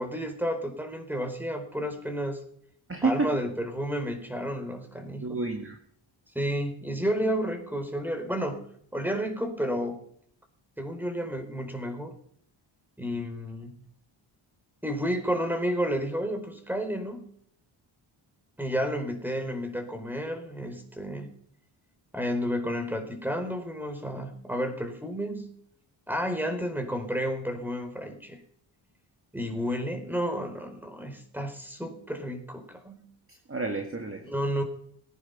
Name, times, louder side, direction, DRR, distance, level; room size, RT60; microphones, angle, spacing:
voice 1, 0.0-2.4 3.0-5.4 6.3-8.6 8.9-10.0 10.8-12.1 13.0-13.8 14.8-17.3 18.6-21.3 22.1-25.5 26.1-28.4 29.3-33.0 34.3-34.6, equal, 5° right, 6 dB, 4.5 m, -31 dB
voice 2, 2.9-3.4 5.2-5.8 33.3-34.3, right 3 dB, 25° right, 4 dB, 1.9 m, -30 dB
20.0 x 9.9 x 5.9 m, 0.64 s
cardioid pair, 70°, 49 cm